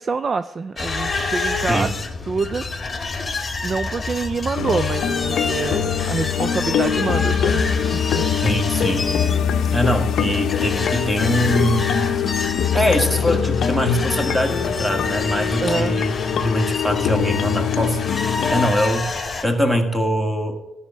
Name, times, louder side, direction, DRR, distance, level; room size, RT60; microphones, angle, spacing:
voice 1, 0.0-1.9 2.3-2.7 3.6-8.3 15.6-16.0, right 4 dB, 40° right, 12 dB, 0.3 m, -26 dB
sound 1, 0.8-19.4, left 3 dB, 25° left, 1.5 m, -28 dB
sound 2, 4.5-18.7, left 8 dB, 70° left, 0.6 m, -23 dB
voice 2, 8.4-9.1 9.7-12.1 12.7-18.0 18.5-20.6, equal, 5° right, 4 dB, 1.7 m, -22 dB
13.5 x 5.5 x 7.4 m, 1.1 s
cardioid pair, 90°, 0 cm